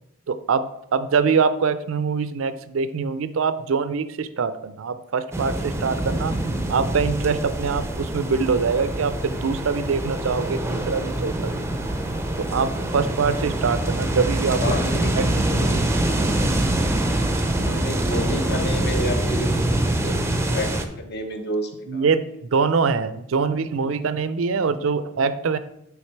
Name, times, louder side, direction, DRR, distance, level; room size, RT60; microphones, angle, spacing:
voice 1, 0.3-6.3 6.7-11.7 12.4-14.7 15.1-15.8 21.9-25.6, right 5 dB, 70° right, 12 dB, 0.5 m, -24 dB
sound 1, 5.3-20.9, right 1 dB, 15° right, 0.5 m, -24 dB
voice 2, 14.6-15.1 17.6-19.5 20.0-22.1, left 1 dB, 50° left, 5 dB, 1.0 m, -30 dB
8.8 x 3.6 x 4.6 m, 0.81 s
head